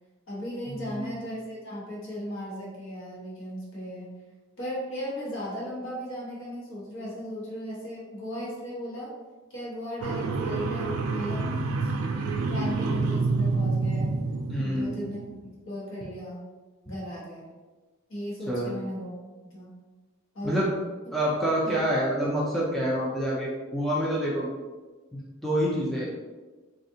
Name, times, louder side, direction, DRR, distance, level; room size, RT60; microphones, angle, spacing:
voice 1, 0.3-4.1 4.6-9.1 9.5-11.6 11.8-11.9 12.4-14.1 14.6-16.4 16.9-17.5 18.1-19.1 19.4-19.7 20.3-20.6 21.6-21.8, equal, 60° left, -5 dB, 1.0 m, -36 dB
voice 2, 0.8-1.1 14.5-14.9 18.5-18.7 20.4-20.7 21.1-24.5 25.4-26.1, equal, ahead, -7 dB, 0.4 m, -27 dB
sound 1, 10.0-15.3, right 3 dB, 85° right, 0.4 m, -28 dB
3.5 x 2.4 x 2.7 m, 1.3 s
head